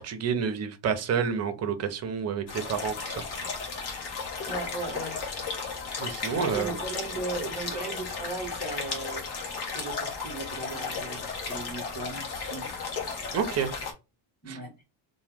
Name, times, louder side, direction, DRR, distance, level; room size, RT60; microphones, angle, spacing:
voice 1, 0.0-3.2 6.0-6.7 13.3-13.7 14.5-14.6, right 7 dB, 35° right, 0.4 m, -29 dB
sound 1, 2.5-13.9, left 4 dB, 55° left, 1.0 m, -35 dB
voice 2, 4.5-5.2 6.4-9.2 9.7-12.7 14.4-14.7, right 2 dB, 20° left, 1.5 m, -36 dB
2.9 x 2.1 x 3.3 m
cardioid pair, 175°, 48 cm